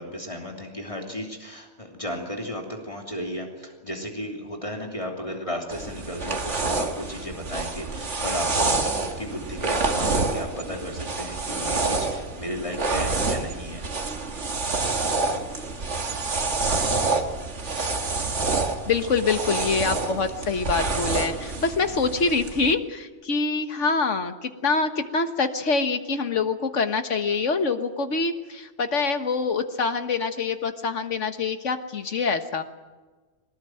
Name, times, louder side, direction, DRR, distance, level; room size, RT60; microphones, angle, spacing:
voice 1, 0.0-14.1 19.0-19.1, equal, 25° left, 1 dB, 3.1 m, -34 dB
sound 1, 5.7-22.7, right 3 dB, 75° right, 2.1 m, -27 dB
voice 2, 18.9-32.6, left 4 dB, 90° left, 8 dB, 1.8 m, -25 dB
22.0 x 19.0 x 9.2 m, 1.3 s
omnidirectional pair, 1.2 m